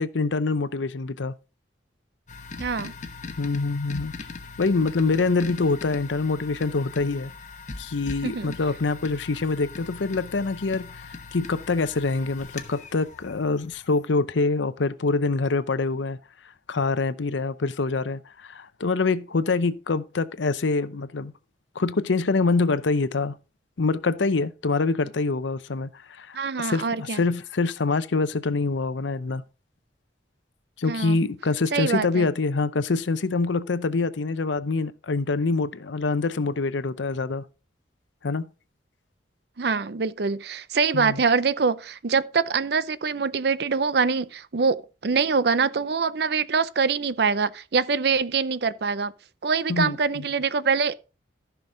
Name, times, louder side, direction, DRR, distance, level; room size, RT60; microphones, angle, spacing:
voice 1, 0.0-1.3 3.4-4.1 4.6-7.3 7.8-16.2 16.7-21.3 21.8-23.3 23.8-29.4 30.8-37.4 38.2-38.5 40.9-41.2 49.7-50.2, left 3 dB, 85° left, 0.7 m, -25 dB
sound 1, 2.3-14.0, left 4 dB, 40° left, 1.1 m, -40 dB
voice 2, 2.6-2.9 8.2-8.5 26.3-27.2 30.9-31.2 31.7-32.3 39.6-49.1 49.4-50.9, right 5 dB, 60° right, 0.5 m, -24 dB
14.5 x 5.9 x 3.8 m
head